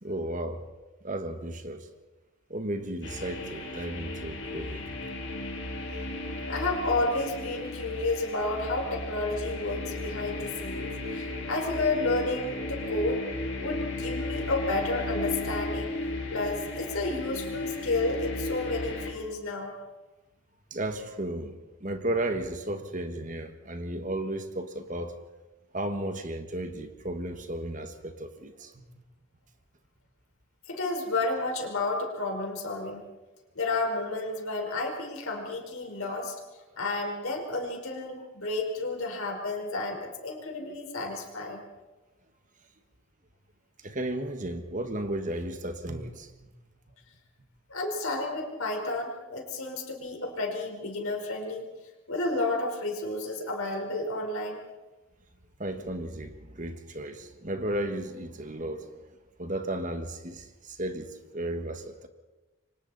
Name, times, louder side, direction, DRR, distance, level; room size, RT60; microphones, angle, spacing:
voice 1, 0.0-0.6 1.0-1.9 2.5-5.0 20.7-25.1 25.7-28.8 43.8-46.3 55.6-58.9 59.4-62.1, right 1 dB, 40° right, 7 dB, 1.7 m, -34 dB
sound 1, 3.0-19.1, left 2 dB, 65° left, 4.8 m, -35 dB
voice 2, 6.5-13.2 13.6-15.9 16.3-19.7 30.7-33.1 33.5-36.3 36.8-41.6 47.7-51.7 52.1-54.6, left 2 dB, 90° left, 1 dB, 4.7 m, -31 dB
28.0 x 24.5 x 4.3 m, 1.1 s
head